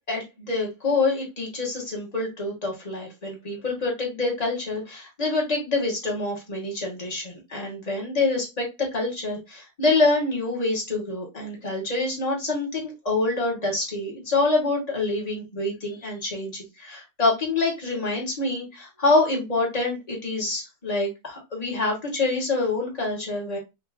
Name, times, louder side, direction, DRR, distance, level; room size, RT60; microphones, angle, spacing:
voice 1, 0.1-23.6, left 3 dB, 25° left, -1 dB, 1.3 m, -26 dB
4.9 x 2.9 x 2.3 m, 0.24 s
omnidirectional pair, 1.9 m